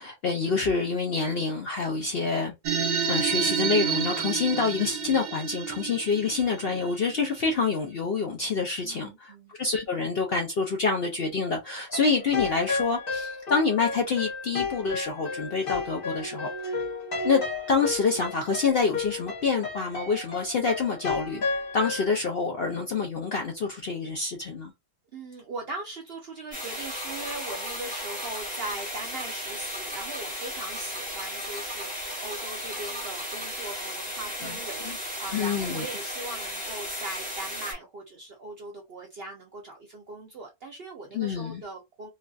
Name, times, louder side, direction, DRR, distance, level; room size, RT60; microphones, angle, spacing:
voice 1, 0.0-9.3 9.6-16.8 17.2-21.4 21.7-24.7 34.4-34.6 34.9-35.0 35.3-35.9 41.1-41.6, left 4 dB, 60° left, 0.6 m, -27 dB
sound 1, 2.6-7.5, right 7 dB, 75° right, 1.1 m, -29 dB
voice 2, 8.8-9.5 25.1-42.1, right 2 dB, 60° right, 0.6 m, -40 dB
sound 2, 11.9-22.1, left 4 dB, 40° left, 1.0 m, -33 dB
sound 3, 26.5-37.7, equal, 5° right, 1.2 m, -35 dB
3.1 x 2.5 x 2.3 m
omnidirectional pair, 1.6 m